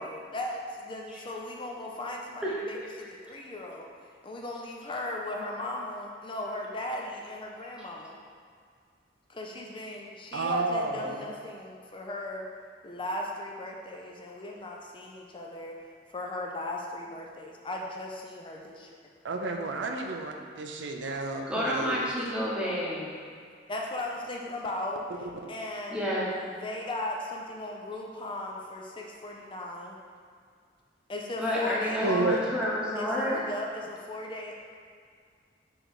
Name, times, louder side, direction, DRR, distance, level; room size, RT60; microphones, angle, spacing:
voice 1, 0.0-3.9 4.2-8.2 9.3-12.5 12.8-15.8 16.1-19.0 23.7-26.2 26.6-30.0 31.1-32.5 33.0-34.5, left 1 dB, 25° left, 0 dB, 0.5 m, -37 dB
voice 2, 10.3-11.2 19.2-22.1 25.4-25.5 32.0-32.4, right 2 dB, 75° right, 2 dB, 0.5 m, -31 dB
voice 3, 21.5-23.1 25.9-26.3 31.4-33.4, equal, 5° right, -6 dB, 1.1 m, -30 dB
6.2 x 3.3 x 4.7 m, 2.1 s
head